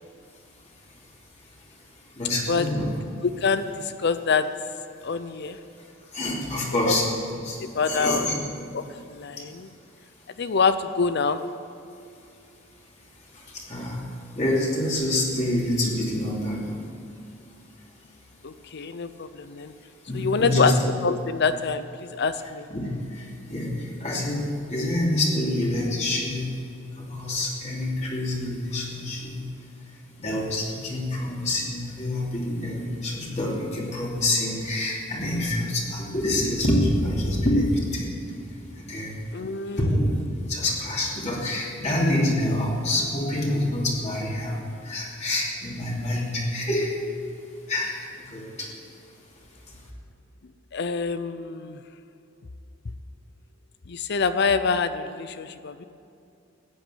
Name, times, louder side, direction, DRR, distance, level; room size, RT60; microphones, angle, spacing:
voice 1, 2.2-2.9 6.1-7.6 7.8-8.3 13.5-14.0 14.4-16.7 20.1-20.7 22.7-23.2 23.5-23.7 24.0-26.5 27.1-29.4 30.2-38.1 38.8-39.1 39.8-40.1 40.5-47.0 47.7-48.0 48.3-48.5, left 1 dB, 35° left, -4 dB, 2.9 m, -26 dB
voice 2, 3.2-4.5 5.0-5.6 6.8-6.9 7.6-8.3 8.7-8.8 9.1-9.7 10.4-11.4 18.4-19.7 20.1-20.7 21.0-22.7 39.3-39.8 50.7-51.8 53.9-55.8, left 5 dB, 60° left, 11 dB, 0.6 m, -25 dB
15.0 x 9.2 x 9.1 m, 2.6 s
head